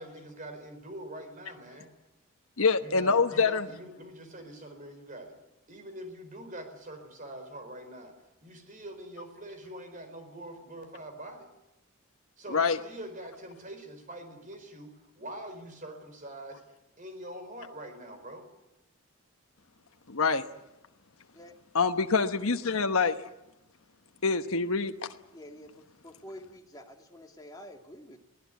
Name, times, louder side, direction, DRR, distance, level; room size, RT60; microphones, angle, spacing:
voice 1, 0.0-1.9 2.8-5.3 5.7-8.1 8.4-11.5 12.4-16.6 17.0-18.4, right 1 dB, 35° right, 7 dB, 4.8 m, -44 dB
voice 2, 2.6-3.6 12.5-12.8 20.1-20.5 21.7-23.2 24.2-25.1, left 4 dB, 70° left, 7 dB, 1.1 m, -25 dB
voice 3, 25.3-28.2, equal, 15° left, 2 dB, 2.3 m, -48 dB
23.0 x 17.5 x 9.4 m, 0.92 s
head